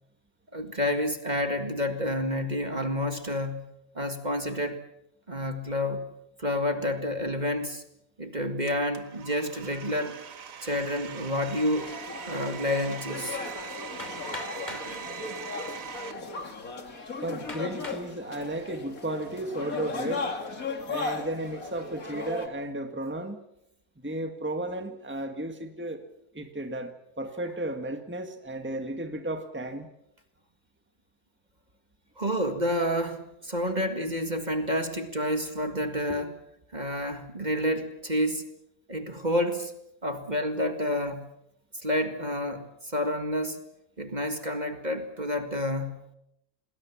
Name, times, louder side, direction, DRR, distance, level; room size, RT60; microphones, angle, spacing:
voice 1, 0.5-3.7 3.9-4.8 5.3-6.1 6.4-7.8 8.2-10.2 10.6-11.9 12.3-13.4 14.7-15.0 32.2-36.3 36.7-38.4 38.9-39.7 40.0-41.3 41.8-43.6 44.0-46.1, left 1 dB, 30° right, 7 dB, 2.1 m, -29 dB
Domestic sounds home sounds, 8.7-16.1, right 8 dB, 70° right, 1.7 m, -42 dB
sound 1, 11.8-22.5, left 4 dB, 80° left, 2.9 m, -36 dB
Hammer, 14.0-14.9 15.8-15.9 16.5-16.6 17.5-18.1 18.7-19.1, left 1 dB, 30° left, 3.3 m, -41 dB
voice 2, 17.2-20.3 20.9-23.4 24.0-26.0 26.3-29.9, right 1 dB, 10° right, 6 dB, 1.8 m, -34 dB
28.0 x 20.5 x 7.3 m, 0.82 s
omnidirectional pair, 1.5 m